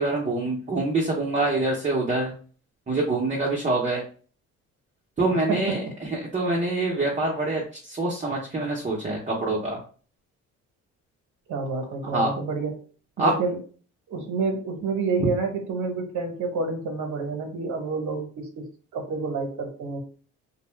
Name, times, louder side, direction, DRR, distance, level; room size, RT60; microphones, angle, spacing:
voice 1, 0.0-2.3 2.9-4.0 5.2-9.8 12.1-12.3 13.2-13.3, right 2 dB, 25° right, -3 dB, 0.7 m, -25 dB
voice 2, 5.3-5.8 11.5-12.8 13.2-13.6 14.1-20.0, right 4 dB, 70° right, 4 dB, 0.8 m, -29 dB
2.6 x 2.1 x 3.1 m, 0.40 s
cardioid pair, 90°, 30 cm